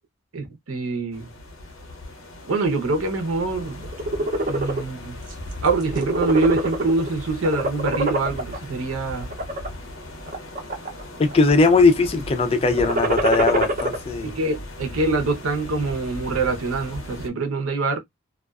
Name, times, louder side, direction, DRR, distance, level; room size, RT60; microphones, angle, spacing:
voice 1, 0.3-1.3 2.5-3.9 4.5-5.2 5.6-9.3 14.2-18.0, right 3 dB, 75° right, 0.7 m, -24 dB
sound 1, 1.1-17.3, left 1 dB, 70° left, 0.6 m, -38 dB
sound 2, 3.8-4.8 5.3-5.5 5.8-7.1 7.4-8.6 9.2-9.7 10.3-11.0 11.3-11.8 12.7-14.0, right 1 dB, 35° right, 0.6 m, -24 dB
voice 2, 11.2-14.3, left 3 dB, 25° left, 0.4 m, -19 dB
2.4 x 2.3 x 2.2 m
head